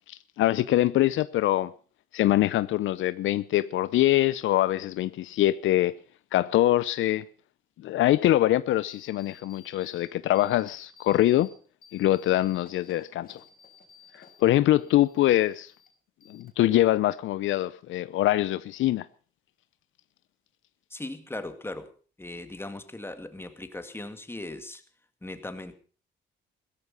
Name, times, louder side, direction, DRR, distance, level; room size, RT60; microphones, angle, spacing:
voice 1, 0.1-1.7 2.1-5.9 6.3-7.2 7.8-11.5 11.9-13.4 14.4-15.7 16.3-19.0, left 14 dB, 80° left, 0.7 m, -24 dB
sound 1, 8.9-10.0 10.3-11.5 11.8-14.4 14.7-15.9 16.2-16.8, left 6 dB, 50° left, 4.3 m, -54 dB
voice 2, 20.9-21.9 22.2-24.8 25.2-25.7, left 2 dB, 10° left, 2.1 m, -38 dB
16.5 x 14.0 x 5.4 m
cardioid pair, 90°, 20 cm